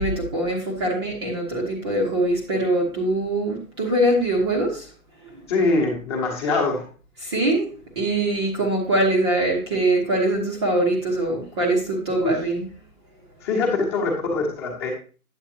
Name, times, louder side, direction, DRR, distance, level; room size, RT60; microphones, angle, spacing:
voice 1, 0.0-4.9 5.2-5.4 7.2-7.7 8.0-12.7, right 1 dB, 20° right, -2 dB, 1.0 m, -23 dB
voice 2, 5.5-6.8 12.2-12.3 13.4-14.9, left 3 dB, 20° left, 0 dB, 1.3 m, -23 dB
8.6 x 8.1 x 2.8 m, 0.37 s
hypercardioid pair, 160°, 44 cm